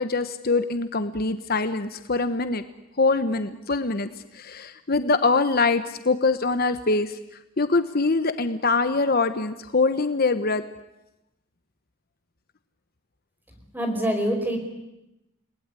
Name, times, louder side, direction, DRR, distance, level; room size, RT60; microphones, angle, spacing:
voice 1, 0.0-2.6 3.0-4.1 4.3-7.2 7.6-10.6, left 3 dB, 45° left, 10 dB, 1.0 m, -23 dB
voice 2, 13.7-14.6, equal, 10° right, 5 dB, 4.7 m, -25 dB
30.0 x 19.5 x 9.8 m, 0.95 s
head